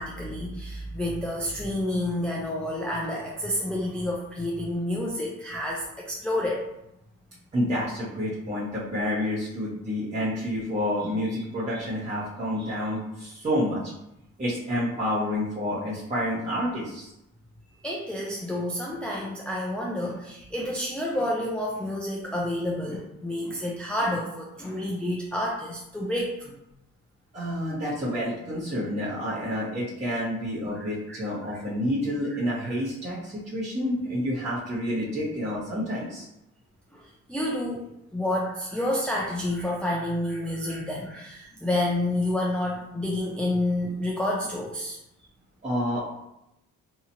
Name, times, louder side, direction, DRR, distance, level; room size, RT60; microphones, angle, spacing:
voice 1, 0.0-6.6 11.7-11.8 12.6-12.7 17.8-26.6 30.7-31.6 32.3-32.7 36.9-37.0 37.3-37.8 38.1-45.0, left 1 dB, 5° left, -3 dB, 0.4 m, -29 dB
voice 2, 7.5-13.9 14.4-17.1 27.3-36.3 45.6-46.2, equal, 20° right, -10 dB, 1.0 m, -29 dB
2.8 x 2.4 x 2.8 m, 0.85 s
cardioid pair, 90°, 30 cm